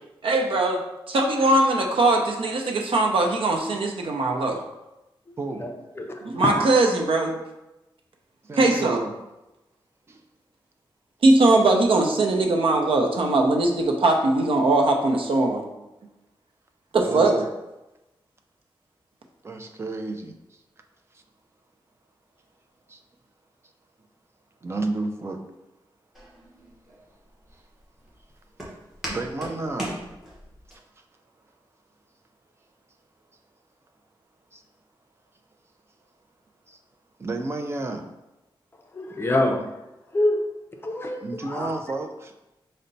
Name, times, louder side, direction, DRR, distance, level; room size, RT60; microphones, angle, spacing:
voice 1, 0.2-0.8 1.1-4.6 6.2-7.4 8.6-9.0 11.2-15.6 16.9-17.3, right 2 dB, 85° right, 2 dB, 0.6 m, -20 dB
voice 2, 5.4-5.7 8.4-9.1 10.1-10.2 16.9-17.4 19.4-20.3 22.9-23.0 24.6-25.4 29.1-30.0 34.5-34.6 36.7-36.8 37.2-38.1 41.2-42.3, right 2 dB, 30° right, 5 dB, 0.4 m, -31 dB
voice 3, 6.0-6.6 38.9-39.6 40.1-40.4 40.8-41.2 41.5-41.7, left 1 dB, 25° left, 2 dB, 0.5 m, -25 dB
Walk footsteps, 26.1-30.7, right 1 dB, 5° right, 1.0 m, -38 dB
5.4 x 2.1 x 3.9 m, 0.98 s
wide cardioid pair, 155°, 9 cm